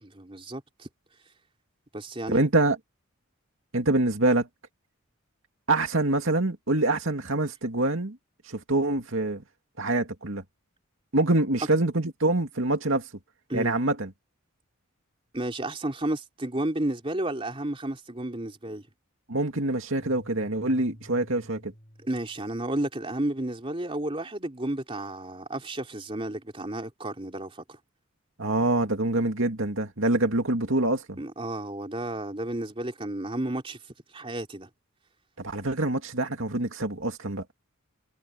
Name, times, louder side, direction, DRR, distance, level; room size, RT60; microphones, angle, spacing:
voice 1, 0.0-0.9 1.9-2.4 13.5-13.8 15.3-18.8 22.0-27.8 31.2-33.8 34.1-34.7, right 1 dB, 25° right, 3.1 m, -32 dB
voice 2, 2.3-2.8 3.7-4.5 5.7-8.2 8.5-9.4 9.8-10.4 11.1-13.1 13.5-14.1 19.3-21.7 28.4-31.2 35.4-37.4, right 2 dB, 65° right, 2.5 m, -25 dB
sound 1, 20.0-22.5, equal, 30° left, 7.4 m, -49 dB
head